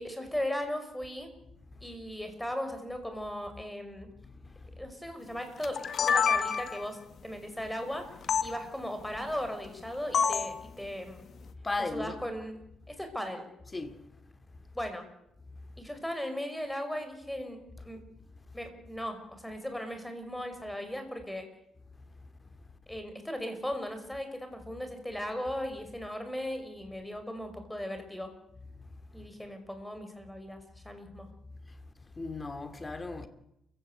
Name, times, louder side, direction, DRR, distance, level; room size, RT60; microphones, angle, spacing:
voice 1, 0.0-1.3 1.8-4.1 4.8-8.1 8.4-11.3 11.8-13.5 14.7-15.1 15.8-18.0 18.5-21.5 22.9-28.3 29.1-31.3, equal, 5° left, 5.6 m, -37 dB
sound 1, 5.6-6.9 8.3-8.5 10.1-10.6, left 6 dB, 55° left, 1.6 m, -27 dB
voice 2, 11.6-12.2 13.7-13.9 25.1-25.2 32.2-33.3, left 3 dB, 25° left, 2.7 m, -35 dB
29.0 x 16.5 x 8.1 m
cardioid pair, 90°, 0 cm